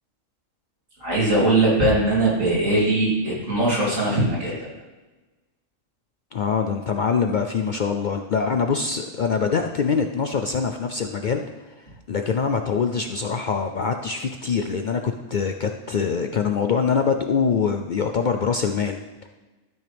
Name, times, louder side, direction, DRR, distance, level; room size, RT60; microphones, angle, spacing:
voice 1, 1.0-4.6, right 2 dB, 85° right, -6 dB, 3.4 m, -20 dB
voice 2, 6.3-19.3, left 5 dB, 60° left, 5 dB, 0.5 m, -24 dB
13.0 x 6.3 x 3.4 m, 1.2 s
omnidirectional pair, 1.3 m